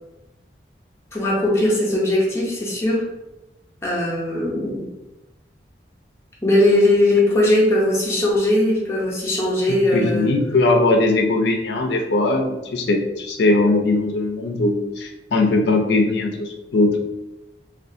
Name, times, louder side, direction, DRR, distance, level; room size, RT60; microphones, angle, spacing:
voice 1, 1.1-3.1 3.8-4.9 6.4-10.3, left 1 dB, 15° left, -5 dB, 0.6 m, -19 dB
voice 2, 9.9-17.0, left 2 dB, 70° left, 3 dB, 0.4 m, -20 dB
2.5 x 2.3 x 2.6 m, 0.99 s
head